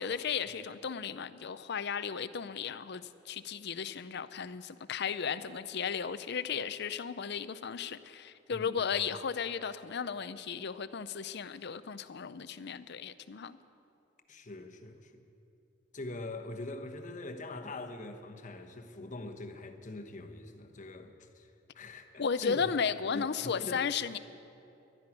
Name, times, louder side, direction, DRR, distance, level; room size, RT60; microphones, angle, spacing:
voice 1, 0.0-13.6 22.2-24.2, left 6 dB, 60° left, 13 dB, 0.6 m, -35 dB
voice 2, 8.5-8.8 14.3-15.2 15.9-22.6 23.1-23.8, left 2 dB, 40° left, 5 dB, 1.1 m, -43 dB
12.0 x 10.5 x 9.9 m, 2.8 s
head